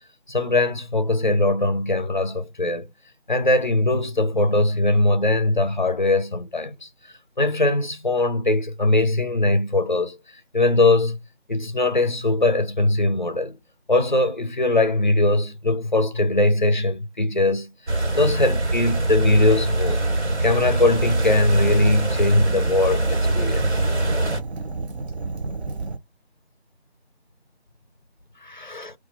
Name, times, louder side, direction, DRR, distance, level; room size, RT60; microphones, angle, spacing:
voice 1, 0.3-2.9 3.3-6.9 7.4-10.2 10.5-11.2 11.5-13.5 13.9-20.0 20.4-23.6 28.4-28.9, left 2 dB, 45° left, 0.4 m, -21 dB
sound 1, 17.9-24.4, right 2 dB, 90° right, 1.3 m, -23 dB
Fire, 20.6-26.0, right 3 dB, 70° right, 0.6 m, -32 dB
2.3 x 2.0 x 2.7 m
figure-of-eight pair, 165°, 33 cm